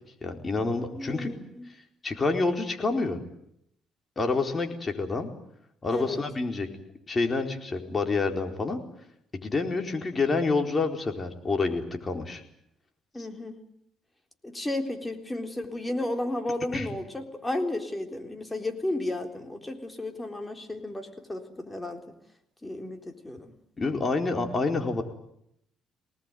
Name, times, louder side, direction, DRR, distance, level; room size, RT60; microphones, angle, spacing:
voice 1, 0.2-1.4 2.0-3.2 4.2-5.3 5.8-6.7 7.1-8.8 9.3-12.4 16.7-16.9 23.8-25.0, left 3 dB, 30° left, 4 dB, 4.3 m, -28 dB
voice 2, 0.9-1.7 5.9-6.2 13.1-13.6 14.4-22.0 22.6-23.5, left 1 dB, 15° left, 5 dB, 3.8 m, -33 dB
24.0 x 19.5 x 9.3 m, 0.74 s
cardioid pair, 90°, 0 cm